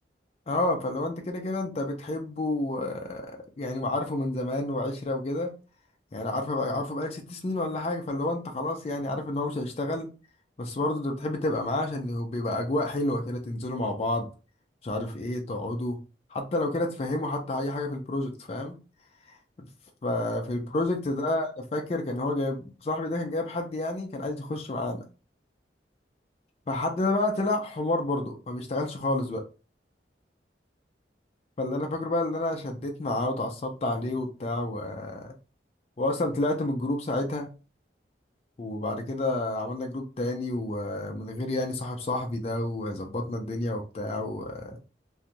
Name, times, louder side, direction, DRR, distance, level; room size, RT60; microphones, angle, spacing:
voice 1, 0.5-5.5 6.1-10.1 10.6-14.3 14.8-16.0 16.3-18.7 19.6-19.7 20.0-25.0 26.7-29.4 31.6-35.3 36.0-37.5 38.6-44.8, left 2 dB, 35° left, 2 dB, 0.4 m, -30 dB
2.5 x 2.3 x 2.9 m, 0.32 s
head